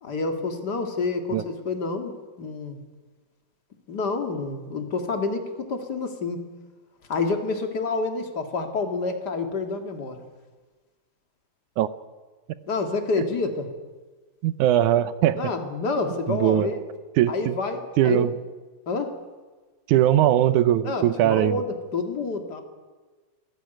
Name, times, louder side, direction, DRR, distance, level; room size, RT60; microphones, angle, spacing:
voice 1, 0.0-2.8 3.9-6.4 7.1-10.2 12.6-13.7 15.3-16.8 17.3-18.3 18.9-19.2 20.8-22.6, left 3 dB, 35° left, 5 dB, 2.2 m, -28 dB
voice 2, 14.4-15.4 16.3-16.7 17.2-17.6 18.0-18.3 19.9-21.6, right 12 dB, 75° right, 14 dB, 2.0 m, -20 dB
25.5 x 15.0 x 9.1 m, 1.3 s
omnidirectional pair, 4.0 m